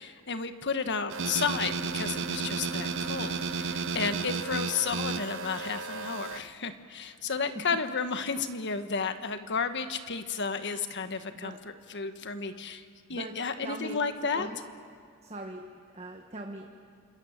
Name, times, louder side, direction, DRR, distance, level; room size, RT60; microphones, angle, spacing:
voice 1, 0.0-14.5, left 5 dB, 55° left, 9 dB, 1.4 m, -32 dB
sound 1, 1.1-6.4, right 4 dB, 65° right, 1.0 m, -33 dB
voice 2, 11.3-11.6 13.1-13.3 13.6-14.0 14.2-14.6 15.2-16.7, right 2 dB, 30° right, 3 dB, 1.4 m, -41 dB
28.5 x 26.5 x 7.3 m, 2.1 s
head